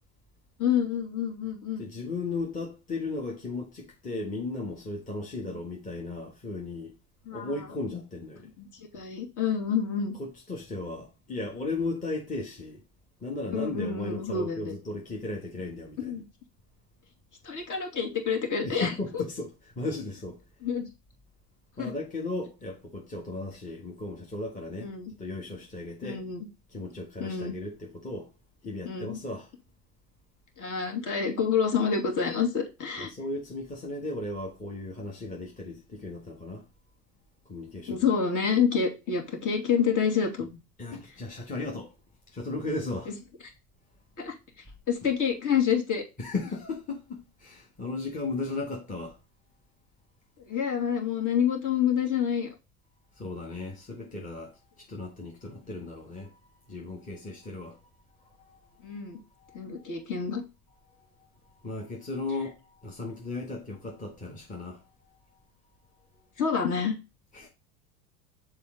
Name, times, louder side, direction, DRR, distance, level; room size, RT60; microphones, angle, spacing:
voice 1, 0.6-1.9 5.4-5.5 7.3-7.5 8.6-10.2 13.5-14.7 16.0-16.2 17.4-19.2 20.6-20.9 21.8-21.9 24.8-25.1 26.0-26.5 27.2-27.6 28.8-29.2 30.6-33.1 37.9-40.5 43.1-43.2 44.2-44.3 44.9-46.0 50.4-52.5 58.8-59.2 59.5-60.4 66.4-67.0, left 7 dB, 40° left, 2.7 m, -28 dB
voice 2, 1.8-6.9 7.3-8.5 10.2-12.8 13.2-16.1 18.6-20.4 21.8-24.9 25.2-26.2 26.7-28.3 28.6-29.5 33.0-36.7 37.4-38.0 40.8-41.9 42.3-43.1 46.2-49.2 53.1-57.8 58.2-59.9 60.9-65.4 67.3-67.5, left 2 dB, 15° left, 1.6 m, -36 dB
6.8 x 4.5 x 3.8 m
hypercardioid pair, 75°, 46 cm